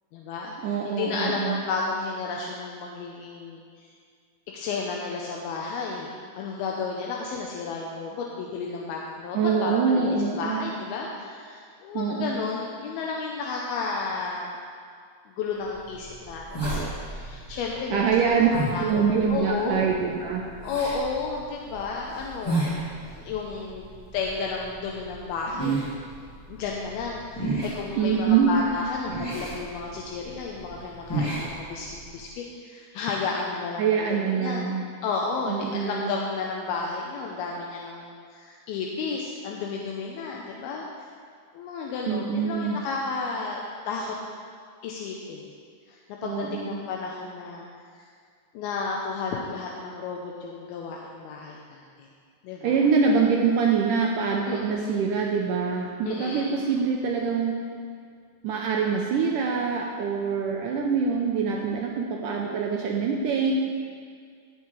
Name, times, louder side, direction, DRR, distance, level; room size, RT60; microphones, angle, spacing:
voice 1, 0.1-3.9 4.5-14.5 15.3-18.2 18.5-19.0 19.3-19.9 20.6-22.7 23.1-25.8 26.5-34.7 35.0-41.1 41.5-44.2 44.8-45.4 45.9-47.7 48.0-48.1 48.5-52.1 52.4-52.9 54.5-55.0 56.0-56.5, left 4 dB, 80° left, -1 dB, 2.6 m, -32 dB
voice 2, 0.6-1.6 9.3-10.7 11.9-12.4 17.9-18.5 18.8-20.5 28.0-28.5 33.8-34.8 35.5-36.1 42.1-42.8 46.2-46.8 52.6-57.5 58.4-63.5, right 6 dB, 85° right, -1 dB, 1.9 m, -24 dB
sound 1, 15.6-32.3, right 2 dB, 10° left, 1.5 m, -34 dB
16.0 x 8.1 x 3.2 m, 2.1 s
omnidirectional pair, 4.5 m